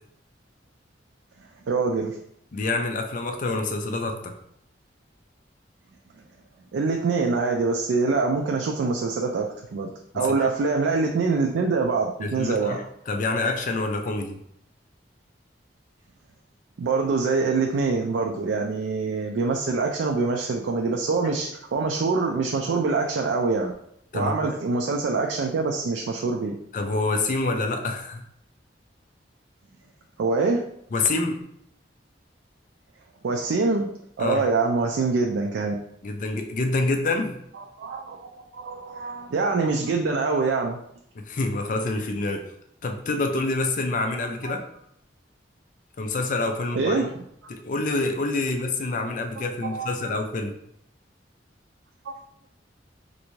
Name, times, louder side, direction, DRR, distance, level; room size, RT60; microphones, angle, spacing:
voice 1, 1.7-2.2 6.7-9.9 10.1-12.8 16.8-23.7 24.1-26.6 30.2-30.6 33.2-33.9 34.2-35.8 37.8-40.8 44.4-44.6 46.7-47.1 49.6-50.1 52.1-52.2, right 4 dB, 85° right, 2 dB, 0.4 m, -25 dB
voice 2, 2.5-4.3 10.2-10.3 12.2-14.4 24.1-24.6 26.7-28.3 30.9-31.4 34.2-34.5 36.0-37.4 41.1-42.4 42.8-44.6 46.0-47.1 47.5-50.6, left 2 dB, 45° left, 4 dB, 0.4 m, -27 dB
3.3 x 2.6 x 3.0 m, 0.72 s
head